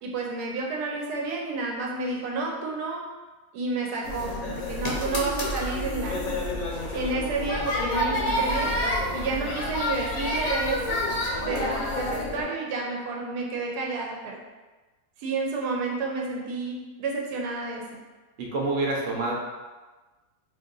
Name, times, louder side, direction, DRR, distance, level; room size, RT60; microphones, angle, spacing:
voice 1, 0.0-3.0 3.5-6.2 6.9-8.7 9.1-11.1 11.3-14.4 15.2-18.0, right 3 dB, 90° right, -1 dB, 1.2 m, -30 dB
sound 1, 4.0-12.4, left 1 dB, 65° left, 1.1 m, -28 dB
voice 2, 18.4-19.3, right 2 dB, 60° right, -2 dB, 1.0 m, -27 dB
2.8 x 2.6 x 3.8 m, 1.2 s
omnidirectional pair, 1.7 m